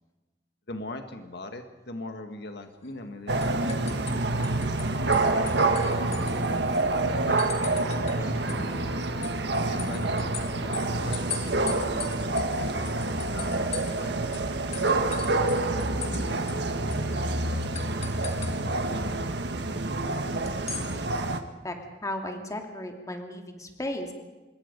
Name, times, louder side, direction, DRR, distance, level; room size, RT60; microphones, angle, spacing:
voice 1, 0.7-4.5 5.2-6.6 7.2-8.9 9.7-14.1 14.9-17.5, left 2 dB, 65° left, 6 dB, 1.7 m, -42 dB
sound 1, 2.8-3.1 3.4-4.8 5.1-6.8 7.4-8.2 8.5-14.0 14.3-14.4 14.7-16.2 16.5-16.6 16.9-17.1 17.7-18.5 20.5-20.9, left 6 dB, 35° left, 2.4 m, -39 dB
sound 2, 3.3-21.4, right 2 dB, 70° right, 1.7 m, -27 dB
voice 2, 22.0-24.1, left 1 dB, 20° left, 3 dB, 2.7 m, -34 dB
26.0 x 22.0 x 5.3 m, 1.2 s
head